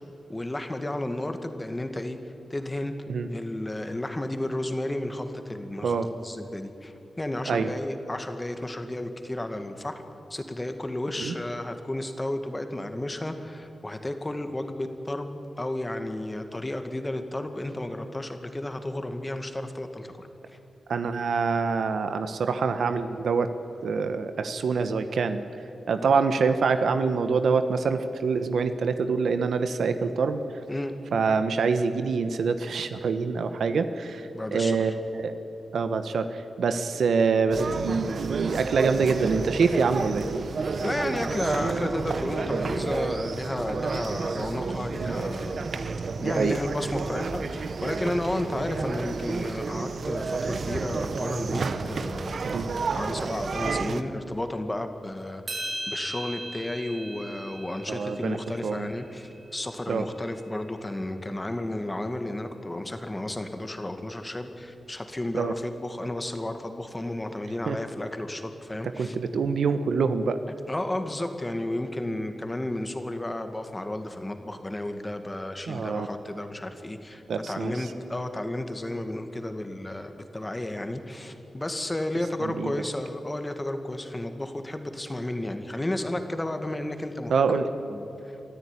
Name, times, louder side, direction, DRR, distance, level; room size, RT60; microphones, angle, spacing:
voice 1, 0.3-2.2 2.5-2.9 3.3-10.0 10.3-20.6 30.7-30.9 34.3-34.9 40.8-45.9 46.2-69.2 70.7-87.6 87.9-88.1, left 1 dB, 15° left, 7 dB, 1.9 m, -33 dB
voice 2, 20.9-23.5 23.8-25.4 25.9-30.4 31.1-35.3 35.7-40.2 45.0-45.1 46.2-46.6 52.4-52.7 57.9-58.4 58.6-58.9 59.9-60.1 65.3-65.5 67.7-67.8 69.0-70.4 75.7-76.1 77.3-77.9 82.4-82.7 87.3-87.6, right 5 dB, 80° right, 9 dB, 1.1 m, -25 dB
sound 1, 37.5-54.0, right 4 dB, 60° right, 1.1 m, -31 dB
sound 2, 55.5-59.9, right 1 dB, 40° right, 6.6 m, -38 dB
24.5 x 14.0 x 9.9 m, 3.0 s
wide cardioid pair, 100°, 0 cm